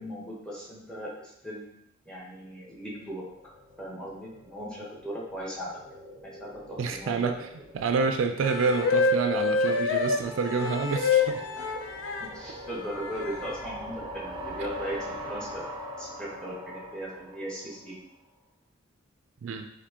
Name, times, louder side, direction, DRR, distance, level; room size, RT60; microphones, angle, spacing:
voice 1, 0.0-1.7 2.0-3.3 3.8-5.7 6.2-7.3 11.6-11.7 12.2-15.7 16.0-18.1, equal, 5° left, -4 dB, 1.0 m, -38 dB
sound 1, 2.7-18.0, equal, 25° right, 0.5 m, -43 dB
voice 2, 6.8-7.3 7.7-11.4 19.4-19.7, right 4 dB, 80° right, 6 dB, 0.4 m, -28 dB
sound 2, 8.4-12.3 13.0-13.6, left 4 dB, 90° left, 0.4 m, -26 dB
4.3 x 2.6 x 2.8 m, 0.77 s
head